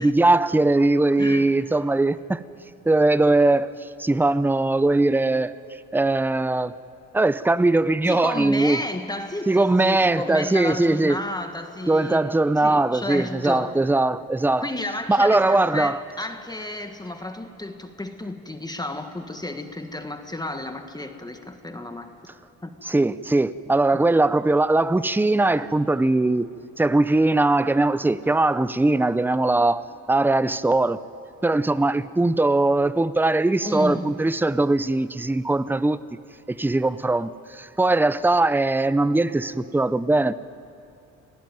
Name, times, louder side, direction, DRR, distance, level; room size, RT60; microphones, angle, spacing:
voice 1, 0.0-2.4 2.9-3.7 4.0-5.5 5.9-6.7 7.1-8.8 9.5-11.2 11.9-14.7 15.1-16.0 22.8-26.5 26.8-29.8 30.1-31.0 31.4-36.0 36.5-40.3, right 2 dB, 5° right, 15 dB, 0.6 m, -20 dB
voice 2, 1.2-1.5 8.1-12.2 12.6-13.8 14.6-22.1 22.6-22.7 23.9-24.1 33.6-34.1, left 2 dB, 15° left, 6 dB, 1.5 m, -32 dB
26.0 x 19.0 x 9.3 m, 2.7 s
cardioid pair, 90°, 30 cm